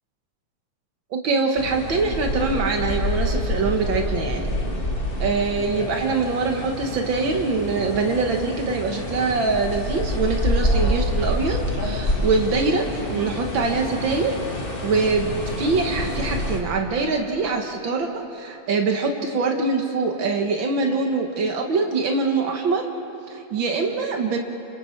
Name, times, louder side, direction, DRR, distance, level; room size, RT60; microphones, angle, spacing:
voice 1, 1.1-4.5 5.2-14.3 14.8-22.9 23.3-24.4, right 4 dB, 85° right, 3 dB, 1.0 m, -24 dB
sound 1, 1.6-16.6, left 1 dB, 85° left, 0.5 m, -27 dB
28.5 x 27.0 x 4.5 m, 2.8 s
omnidirectional pair, 4.2 m